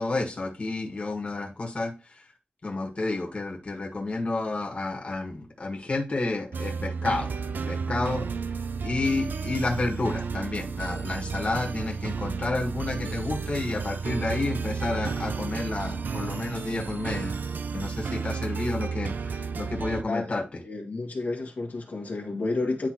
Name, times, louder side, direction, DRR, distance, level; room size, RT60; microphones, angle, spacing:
voice 1, 0.0-2.3 2.6-7.4 7.7-8.3 8.8-17.4 17.7-20.6, left 2 dB, 40° left, 0 dB, 1.8 m, -30 dB
sound 1, 6.5-20.0, right 5 dB, 75° right, 0.5 m, -32 dB
voice 2, 20.6-22.9, left 3 dB, 60° left, 0 dB, 1.6 m, -30 dB
10.5 x 3.7 x 3.0 m, 0.28 s
wide cardioid pair, 125°, 3 cm